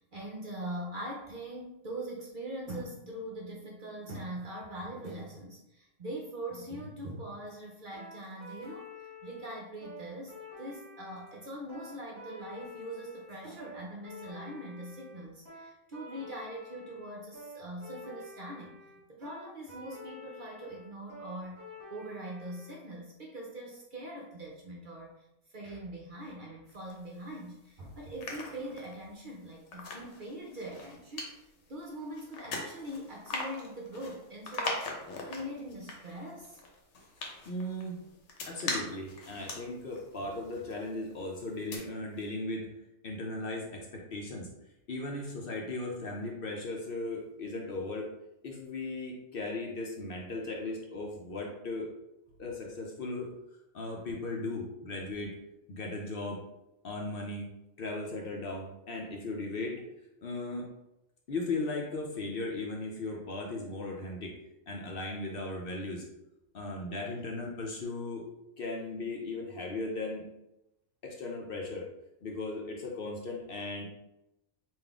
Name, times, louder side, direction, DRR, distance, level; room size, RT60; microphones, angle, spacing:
voice 1, 0.0-18.8 19.1-21.6 21.9-25.1 25.5-31.3 31.7-34.9 35.2-36.6, right 1 dB, 55° right, -1 dB, 0.7 m, -42 dB
sound 1, 7.9-22.8, left 2 dB, 15° right, 1.4 m, -49 dB
sound 2, 26.7-27.6 28.0-41.2 41.5-41.8, left 2 dB, 70° left, 1.1 m, -41 dB
voice 2, 37.5-38.0 38.5-42.7 43.0-44.5 44.9-48.1 48.4-51.9 52.4-53.3 53.7-55.4 55.7-56.4 56.8-57.5 57.8-59.8 60.2-60.6 61.3-64.3 64.7-66.0 66.5-68.3 68.6-70.3 71.0-71.9 72.2-73.8, left 2 dB, 55° left, -1 dB, 0.8 m, -37 dB
3.8 x 2.5 x 3.5 m, 0.89 s
omnidirectional pair, 1.3 m